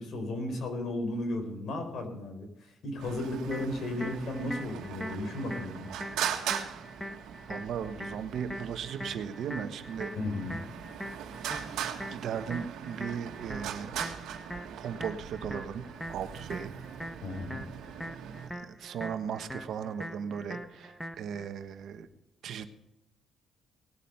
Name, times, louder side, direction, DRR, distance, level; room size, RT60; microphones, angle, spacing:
voice 1, 0.0-5.9 10.1-10.6 17.2-17.6, left 1 dB, 65° left, 5 dB, 4.4 m, -34 dB
Traffic noise roadway noise, 3.0-18.5, right 9 dB, 85° right, 1.8 m, -40 dB
sound 1, 3.5-21.5, equal, ahead, 1.2 m, -43 dB
voice 2, 7.5-10.1 12.0-14.0 14.8-15.8 16.1-16.7 18.5-22.1 22.4-22.7, right 7 dB, 70° right, 9 dB, 1.3 m, -37 dB
19.0 x 8.4 x 5.7 m, 0.91 s
cardioid pair, 90°, 0 cm